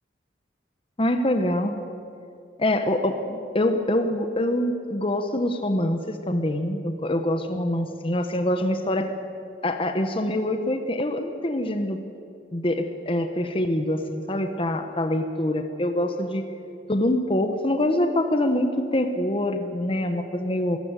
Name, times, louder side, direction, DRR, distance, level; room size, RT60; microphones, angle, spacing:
voice 1, 1.0-1.7 2.6-9.1 9.6-12.0 12.5-16.5 16.9-20.8, left 1 dB, 30° left, 7 dB, 1.1 m, -25 dB
24.5 x 14.5 x 9.1 m, 2.5 s
head